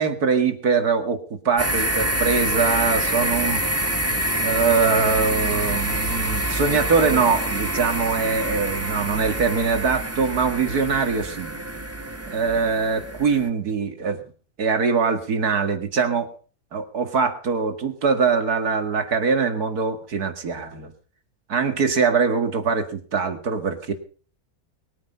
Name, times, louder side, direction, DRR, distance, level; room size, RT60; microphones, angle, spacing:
voice 1, 0.0-3.9 4.4-11.5 12.3-14.2 14.6-16.3 16.7-20.9 21.5-23.9, right 5 dB, 85° right, 8 dB, 2.5 m, -23 dB
sound 1, 1.6-13.5, right 1 dB, 10° right, 1.4 m, -26 dB
21.5 x 9.7 x 5.4 m, 0.41 s
omnidirectional pair, 1.6 m